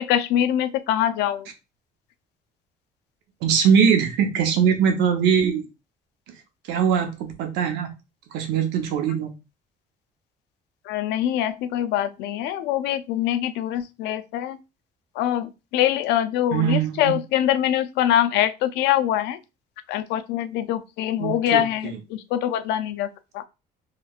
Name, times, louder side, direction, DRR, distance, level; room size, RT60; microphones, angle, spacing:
voice 1, 0.0-1.5 10.9-14.6 15.2-19.4 19.9-23.4, left 11 dB, 85° left, 0.4 m, -24 dB
voice 2, 3.4-5.7 6.7-7.9 8.3-9.3 16.5-17.2 21.2-21.6, right 7 dB, 90° right, 0.8 m, -21 dB
3.2 x 2.9 x 2.3 m
cardioid pair, 110°, 17 cm